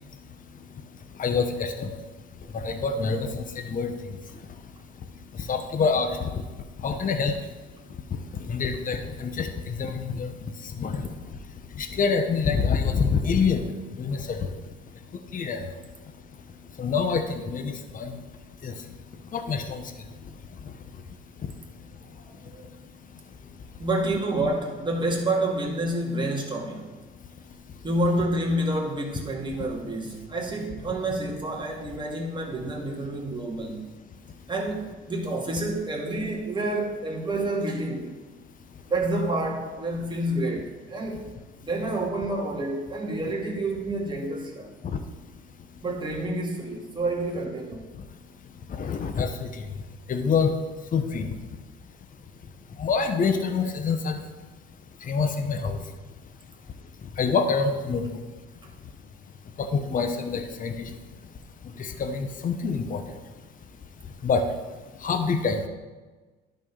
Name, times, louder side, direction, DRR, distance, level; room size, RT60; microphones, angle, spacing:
voice 1, 1.2-1.9 2.5-3.9 5.5-6.4 6.8-7.3 8.4-10.3 10.8-11.0 11.8-13.6 14.0-14.5 15.3-15.7 16.8-18.1 18.6-18.8 19.3-19.9 29.6-29.7 44.8-45.0 48.8-49.5 50.1-50.5 50.9-51.3 52.8-54.2 55.1-55.8 57.2-58.1 59.6-60.9 61.8-63.0 64.2-64.4 65.0-65.7, left 5 dB, 40° left, 7 dB, 1.1 m, -26 dB
voice 2, 22.1-22.7 23.8-26.9 27.8-33.9 34.5-38.1 38.9-41.2 41.6-44.7 45.8-47.8, right 1 dB, 20° right, -2 dB, 2.3 m, -28 dB
11.5 x 4.5 x 5.6 m, 1.3 s
supercardioid pair, 90°, 21 cm